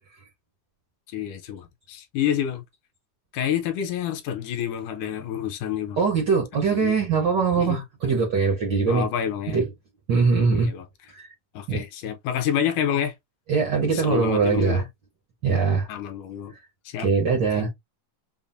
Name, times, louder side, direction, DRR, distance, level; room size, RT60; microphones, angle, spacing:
voice 1, 1.1-2.6 3.3-6.0 6.5-7.0 7.6-8.2 8.9-9.6 10.5-10.9 11.5-13.1 13.9-14.9 15.9-16.5 16.9-17.1 17.6-17.7, left 9 dB, 75° left, 2.2 m, -28 dB
voice 2, 6.0-9.1 9.5-9.7 10.1-10.7 11.1-11.3 11.7-11.8 13.5-14.8 15.4-15.9 16.5-16.6 17.0-17.7, right 5 dB, 80° right, 1.0 m, -22 dB
5.6 x 2.1 x 2.6 m
omnidirectional pair, 3.8 m